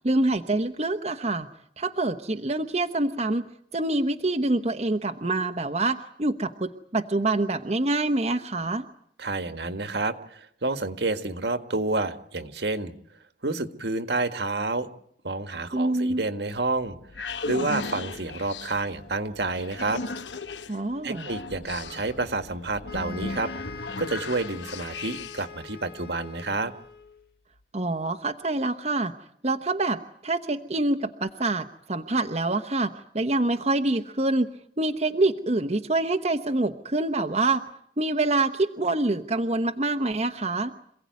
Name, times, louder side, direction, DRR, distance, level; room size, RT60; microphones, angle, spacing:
voice 1, 0.0-1.5 1.8-3.4 3.7-8.8 15.7-16.2 20.7-21.3 27.7-29.1 29.4-34.5 34.8-37.6 38.0-40.7, right 2 dB, 35° right, 5 dB, 1.0 m, -26 dB
voice 2, 9.2-12.9 13.4-14.9 15.2-17.0 17.5-20.0 21.0-23.5 24.0-26.7, right 3 dB, 70° right, 8 dB, 1.7 m, -29 dB
sound 1, 16.8-25.6, left 3 dB, 90° left, 1.1 m, -37 dB
sound 2, 22.8-27.2, left 6 dB, 60° left, 1.9 m, -44 dB
27.0 x 17.0 x 9.5 m, 0.69 s
head